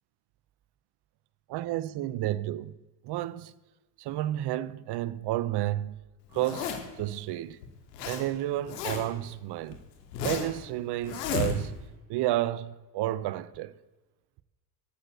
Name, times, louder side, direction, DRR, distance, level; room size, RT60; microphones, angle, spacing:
voice 1, 1.5-2.7 3.0-3.5 4.0-6.0 6.3-7.6 8.0-9.8 10.2-11.8 12.1-13.7, right 14 dB, 55° right, 0.8 m, -31 dB
Zipper (clothing), 6.3-7.0 7.6-8.2 8.5-9.2 9.7-10.6 11.0-11.9, left 7 dB, 90° left, 2.6 m, -33 dB
13.0 x 8.4 x 8.1 m
supercardioid pair, 85°, 48 cm